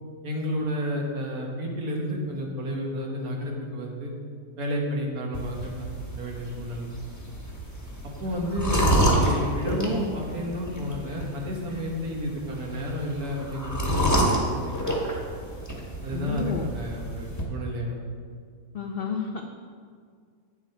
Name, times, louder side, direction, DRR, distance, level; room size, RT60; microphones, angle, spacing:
voice 1, 0.2-4.1 4.6-5.9 6.2-6.9 8.2-14.7 16.0-18.0, equal, 70° right, -1 dB, 1.8 m, -31 dB
sound 1, 5.3-17.4, right 1 dB, 10° left, 1.3 m, -29 dB
voice 2, 16.1-16.7 18.7-19.4, left 6 dB, 75° left, 3 dB, 0.5 m, -30 dB
8.8 x 7.0 x 4.4 m, 2.1 s
omnidirectional pair, 1.7 m